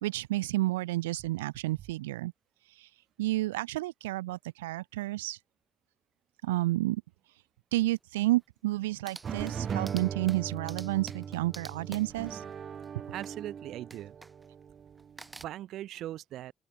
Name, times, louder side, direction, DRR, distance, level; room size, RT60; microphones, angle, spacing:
voice 1, 0.0-2.3 2.8-2.9 3.2-5.4 6.4-7.0 7.7-12.5, right 18 dB, 85° right, 1.2 m, -30 dB
sound 1, 7.8-7.9 8.3-8.4 8.7-13.4 13.9-14.6 15.0-15.4, right 2 dB, 25° right, 5.4 m, -49 dB
sound 2, 9.2-15.4, right 7 dB, 55° right, 7.1 m, -39 dB
voice 2, 13.1-14.2 15.3-16.5, right 13 dB, 70° right, 3.3 m, -40 dB
open air
hypercardioid pair, 45°, 0 cm